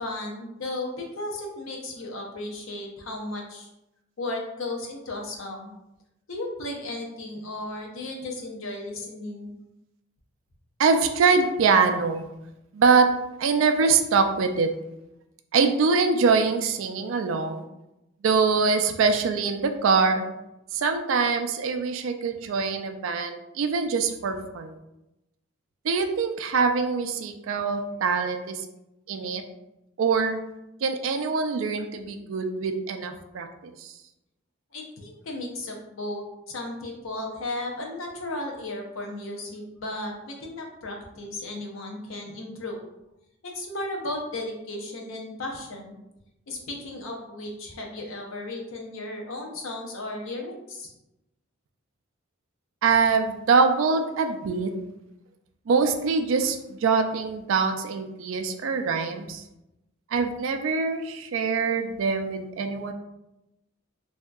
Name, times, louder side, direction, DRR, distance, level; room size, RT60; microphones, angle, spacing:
voice 1, 0.0-3.7 4.2-5.7 6.3-9.5 34.7-42.8 43.4-46.0 46.5-50.9, left 2 dB, 75° left, 1 dB, 0.6 m, -35 dB
voice 2, 10.8-12.3 12.7-13.1 13.4-14.7 15.5-17.6 18.2-20.3 20.7-24.8 25.8-28.7 29.1-29.4 30.0-30.4 30.8-33.9 52.8-54.7 55.7-59.4 60.1-62.9, right 5 dB, 70° right, 7 dB, 0.3 m, -24 dB
3.4 x 2.7 x 2.3 m, 0.91 s
head